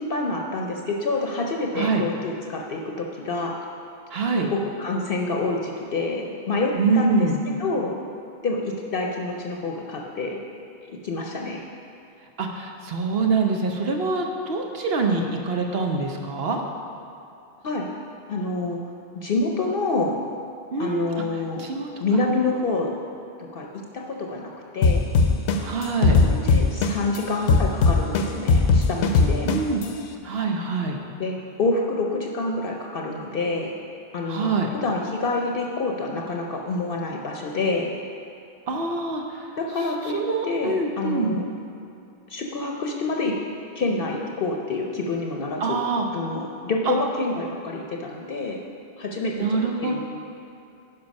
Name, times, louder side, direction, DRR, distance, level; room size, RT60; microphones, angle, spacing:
voice 1, 0.0-3.5 4.5-7.3 7.6-7.9 8.4-10.4 11.0-11.6 17.6-17.9 18.3-18.8 19.1-20.1 20.8-21.7 22.0-22.9 23.5-23.7 23.9-25.1 26.2-29.5 31.2-33.7 34.1-34.6 34.8-37.9 39.6-41.5 42.3-43.3 43.8-45.8 46.1-48.6 49.0-50.0, left 3 dB, 60° left, 1 dB, 0.8 m, -27 dB
voice 2, 4.1-4.5 6.8-7.3 12.4-16.6 20.7-21.2 21.6-21.9 25.6-26.2 29.4-29.8 30.2-31.0 34.3-34.7 38.7-39.4 40.1-41.4 45.6-46.1 46.9-47.0 49.4-50.0, right 4 dB, 65° right, 2 dB, 1.0 m, -25 dB
sound 1, 24.8-27.2 27.5-29.8, left 4 dB, 85° left, 1.0 m, -17 dB
10.0 x 5.7 x 5.3 m, 2.7 s
omnidirectional pair, 1.1 m